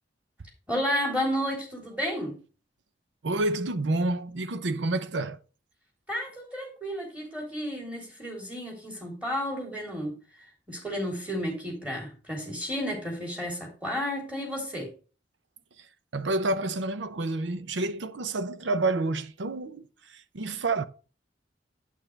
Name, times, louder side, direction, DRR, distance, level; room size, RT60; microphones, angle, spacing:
voice 1, 0.7-2.4 6.1-10.2 10.7-14.9, equal, 10° right, 3.5 m, -32 dB
voice 2, 3.2-5.4 16.1-20.8, right 2 dB, 80° right, 0.7 m, -29 dB
9.0 x 8.4 x 3.4 m
head